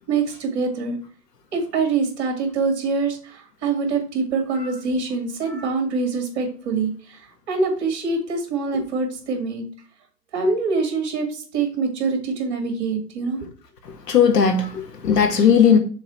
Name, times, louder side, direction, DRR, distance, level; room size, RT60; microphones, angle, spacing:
voice 1, 0.1-1.0 1.5-7.2 7.5-9.6 10.3-13.4, right 4 dB, 40° right, 2.4 m, -24 dB
voice 2, 14.1-15.8, left 7 dB, 75° left, 1.8 m, -17 dB
6.5 x 4.0 x 4.4 m
hypercardioid pair, 155°, 49 cm